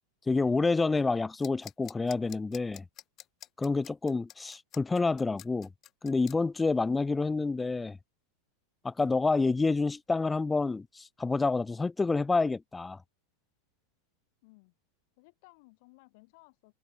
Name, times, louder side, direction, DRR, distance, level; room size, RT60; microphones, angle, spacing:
voice 1, 0.3-2.8 3.6-5.7 6.0-8.0 8.8-13.0, left 3 dB, 10° left, 0.7 m, -28 dB
sound 1, 1.4-6.4, left 12 dB, 30° left, 2.1 m, -48 dB
voice 2, 14.4-14.7 15.2-16.7, left 27 dB, 50° left, 7.9 m, -59 dB
figure-of-eight pair, 90°, 0 cm